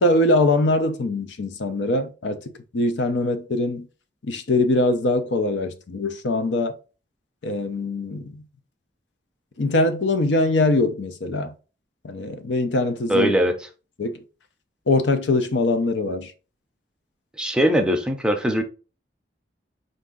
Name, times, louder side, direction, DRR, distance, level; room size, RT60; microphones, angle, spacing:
voice 1, 0.0-2.4 2.7-3.9 4.2-6.7 7.4-8.4 9.6-11.5 12.0-13.3 14.0-14.2 14.9-16.3, left 2 dB, 90° left, 0.6 m, -22 dB
voice 2, 13.1-13.5 17.4-18.6, right 1 dB, 5° right, 0.5 m, -20 dB
4.5 x 2.6 x 3.7 m
head